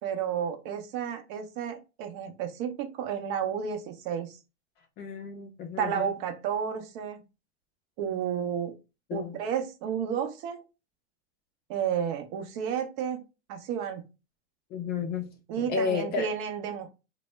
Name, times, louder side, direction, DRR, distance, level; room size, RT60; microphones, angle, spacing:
voice 1, 0.0-4.4 5.8-7.2 8.0-8.7 9.1-10.6 11.7-13.2 13.5-14.0 15.5-16.9, right 8 dB, 45° right, 0.6 m, -32 dB
voice 2, 5.0-6.1 9.1-9.4 14.7-15.3 15.6-16.3, left 6 dB, 30° left, 0.5 m, -32 dB
2.0 x 2.0 x 3.2 m
hypercardioid pair, 110°, 35 cm